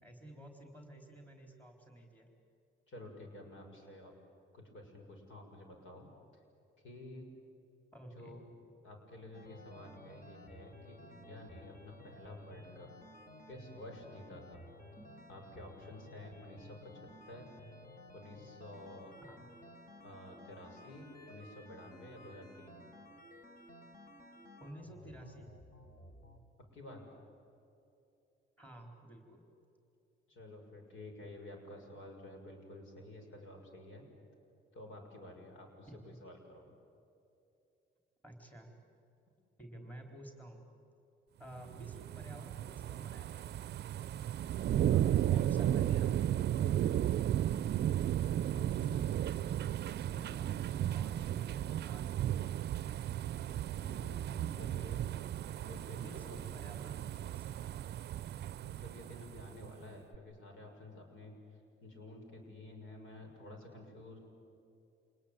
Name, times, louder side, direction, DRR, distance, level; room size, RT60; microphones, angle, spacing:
voice 1, 0.0-2.3 7.9-8.4 15.0-15.1 19.2-19.5 24.6-25.5 28.6-29.4 35.9-36.2 38.2-38.7 39.6-40.7 41.4-43.7 45.3-46.3 48.5-49.2 49.9-50.6 50.9-52.4 56.0-57.5, right 1 dB, 10° left, 3 dB, 4.1 m, -52 dB
voice 2, 2.9-4.1 4.5-6.1 6.8-7.3 8.1-8.4 8.8-12.9 13.5-14.6 15.3-17.5 18.1-19.2 20.0-22.8 26.7-27.0 30.3-34.0 34.7-36.7 44.7-45.9 46.6-46.9 53.7-55.0 55.6-56.6 58.6-61.3 61.8-64.2, left 1 dB, 75° left, 3 dB, 6.6 m, -51 dB
sound 1, 9.3-26.4, left 1 dB, 45° left, 3.9 m, -55 dB
sound 2, 41.6-59.7 60.1-60.2, right 11 dB, 55° right, 0.5 m, -34 dB
27.5 x 20.5 x 9.0 m, 2.7 s
cardioid pair, 90°, 20 cm